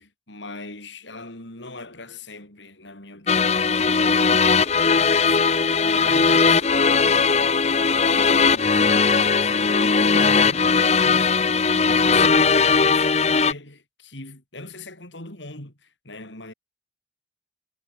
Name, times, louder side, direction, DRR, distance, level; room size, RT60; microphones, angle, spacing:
voice 1, 0.0-4.8 5.2-7.5 8.0-11.5 11.8-16.5, left 2 dB, 80° left, 6.2 m, -40 dB
sound 1, 3.3-13.5, left 5 dB, 35° left, 0.8 m, -19 dB
head